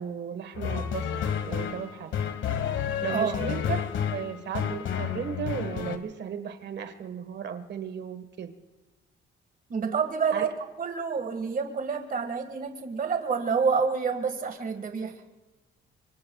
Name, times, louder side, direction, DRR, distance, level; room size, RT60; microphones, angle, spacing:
voice 1, 0.0-2.1 3.0-3.8 4.1-8.5 10.3-10.4, right 7 dB, 60° right, 9 dB, 1.5 m, -35 dB
sound 1, 0.5-6.0, left 8 dB, 75° left, 1.3 m, -30 dB
voice 2, 9.7-10.5 10.8-15.2, right 5 dB, 45° right, 6 dB, 1.8 m, -28 dB
25.0 x 24.5 x 2.3 m, 1.2 s
cardioid pair, 90°, 20 cm